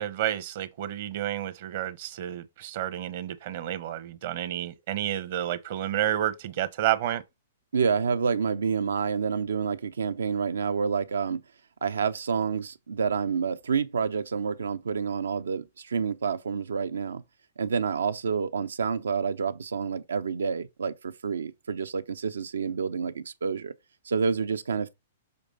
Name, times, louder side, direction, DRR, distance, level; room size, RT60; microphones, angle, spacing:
voice 1, 0.0-7.2, right 12 dB, 55° right, 1.0 m, -30 dB
voice 2, 7.7-11.4 11.8-17.2 17.6-23.7 24.0-24.9, right 6 dB, 85° right, 0.8 m, -28 dB
6.8 x 3.4 x 5.4 m
hypercardioid pair, 130°, 0 cm